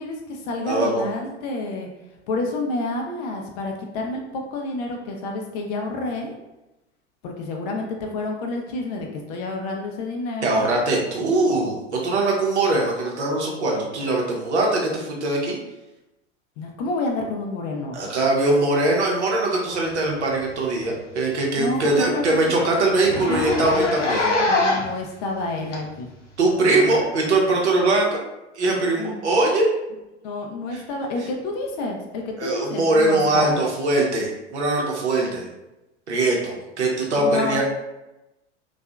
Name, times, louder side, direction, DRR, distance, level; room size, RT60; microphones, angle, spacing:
voice 1, 0.0-1.9 2.3-6.3 7.2-10.7 16.6-18.0 21.6-22.5 23.1-26.1 26.6-27.0 28.9-29.2 30.2-33.6 37.2-37.6, left 2 dB, 35° left, 1 dB, 0.4 m, -29 dB
voice 2, 0.7-1.1 10.4-15.6 17.9-24.3 26.4-28.2 28.6-29.6 30.7-30.8 32.4-35.5 36.1-37.6, right 2 dB, 70° right, -1 dB, 0.8 m, -21 dB
Zipper (clothing), 20.4-20.6 20.9-21.0 21.4-21.5 21.9-22.0 22.2-22.4 23.0-25.0 25.7-25.8 26.8-26.9, left 2 dB, 85° left, 0.6 m, -23 dB
2.6 x 2.3 x 2.2 m, 0.96 s
figure-of-eight pair, 85°, 36 cm